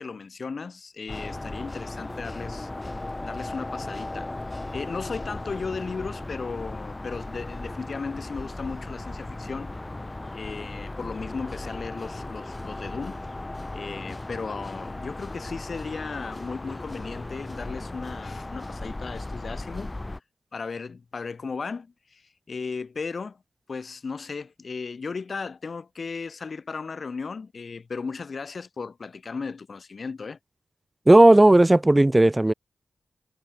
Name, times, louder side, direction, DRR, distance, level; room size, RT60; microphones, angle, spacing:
voice 1, 0.0-2.7 3.2-9.7 10.3-13.2 13.7-19.9 20.5-23.4 23.7-30.4, left 4 dB, 60° left, 5.0 m, -36 dB
sound 1, 1.1-20.2, left 2 dB, 25° left, 2.5 m, -36 dB
voice 2, 31.1-32.5, right 1 dB, 20° right, 0.7 m, -15 dB
cardioid pair, 70°, 0 cm